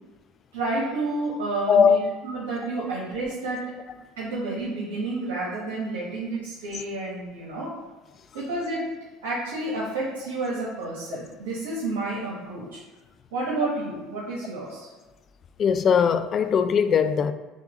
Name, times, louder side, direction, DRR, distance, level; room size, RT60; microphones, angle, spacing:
voice 1, 0.5-3.7 4.2-7.7 8.3-8.9 9.2-12.8 13.3-14.9, right 2 dB, 85° right, 1.2 m, -30 dB
voice 2, 1.7-2.0 15.6-17.3, left 7 dB, 40° left, 0.3 m, -20 dB
7.0 x 2.4 x 3.1 m
supercardioid pair, 95°, 0 cm